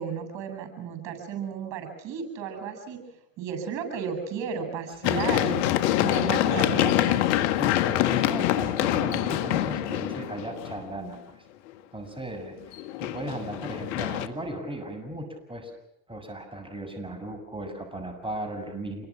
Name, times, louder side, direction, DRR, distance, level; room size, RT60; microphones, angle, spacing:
voice 1, 0.0-3.0 3.4-5.6 6.0-7.2, right 6 dB, 60° right, 8 dB, 8.0 m, -33 dB
Run, 5.0-10.9 12.7-14.3, left 13 dB, 75° left, 1.9 m, -25 dB
voice 2, 7.6-11.4 11.9-15.7 16.1-19.1, right 1 dB, 10° right, 5 dB, 7.3 m, -36 dB
28.0 x 23.0 x 6.1 m, 0.87 s
hypercardioid pair, 80°, 49 cm